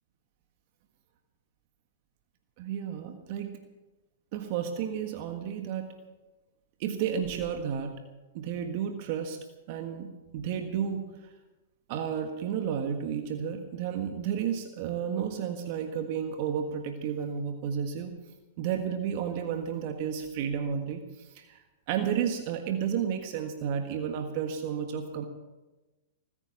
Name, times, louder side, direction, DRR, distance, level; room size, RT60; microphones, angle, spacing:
voice 1, 2.6-3.5 4.3-5.9 6.8-7.9 8.3-9.4 9.7-11.0 11.9-18.1 18.6-21.6 21.9-25.3, right 8 dB, 50° right, 6 dB, 1.6 m, -32 dB
20.0 x 9.9 x 7.3 m, 1.1 s
hypercardioid pair, 110°, 0 cm